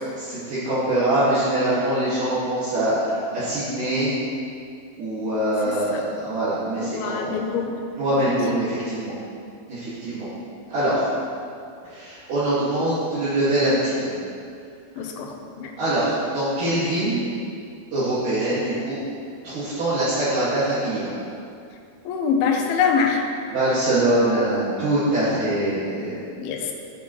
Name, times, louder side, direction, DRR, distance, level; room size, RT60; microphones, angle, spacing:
voice 1, 0.2-4.1 5.0-7.4 8.0-9.1 9.7-10.3 10.7-11.1 11.8-14.1 15.8-17.2 17.9-19.0 19.4-21.1 23.5-26.2, right 1 dB, 60° right, -13 dB, 3.4 m, -23 dB
voice 2, 6.8-7.8 8.2-8.3 15.0-15.7 22.1-23.2 26.4-26.7, left 6 dB, 85° left, 2 dB, 2.8 m, -24 dB
14.5 x 7.0 x 3.1 m, 2.4 s
omnidirectional pair, 4.3 m